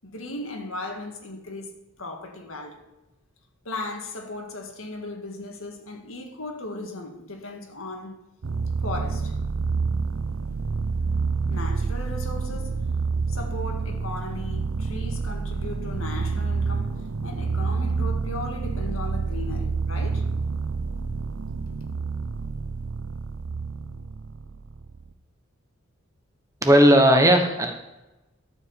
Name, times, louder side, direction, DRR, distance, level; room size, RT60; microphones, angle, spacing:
voice 1, 0.0-1.7 2.0-2.9 3.7-8.2 8.8-9.4 11.4-12.9 13.3-20.3, left 2 dB, 90° left, 1.9 m, -36 dB
sound 1, 8.4-25.1, right 4 dB, 90° right, 0.6 m, -28 dB
voice 2, 26.6-27.7, equal, 15° right, 1.1 m, -16 dB
13.0 x 5.0 x 7.2 m
head